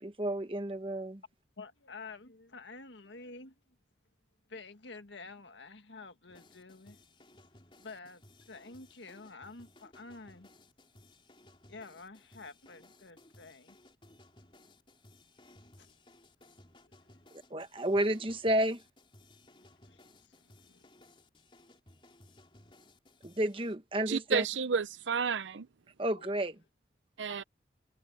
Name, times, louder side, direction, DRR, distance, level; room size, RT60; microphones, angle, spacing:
voice 1, 0.0-1.2 17.5-18.8 23.2-24.4 26.0-26.5, right 1 dB, 30° right, 1.2 m, -31 dB
voice 2, 1.6-3.6 4.5-7.0 7.8-10.5 11.7-13.8 15.8-15.9 16.8-17.2 19.4-20.9 26.2-26.3 27.3-27.4, left 3 dB, 80° left, 1.7 m, -50 dB
sound 1, 6.3-23.8, left 1 dB, 30° left, 3.6 m, -60 dB
voice 3, 24.1-25.7 27.2-27.4, right 5 dB, 90° right, 0.6 m, -31 dB
head